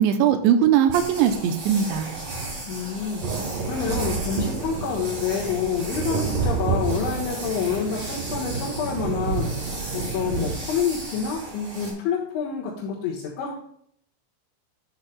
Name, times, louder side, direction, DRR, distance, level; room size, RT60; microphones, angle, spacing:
voice 1, 0.0-2.1, right 9 dB, 85° right, 7 dB, 2.6 m, -20 dB
sound 1, 0.9-11.9, right 2 dB, 35° right, 4.0 m, -36 dB
voice 2, 2.7-13.5, left 6 dB, 70° left, -5 dB, 3.5 m, -28 dB
sound 2, 3.2-10.6, right 5 dB, 60° right, 2.5 m, -29 dB
12.5 x 9.0 x 2.3 m, 0.66 s
omnidirectional pair, 5.9 m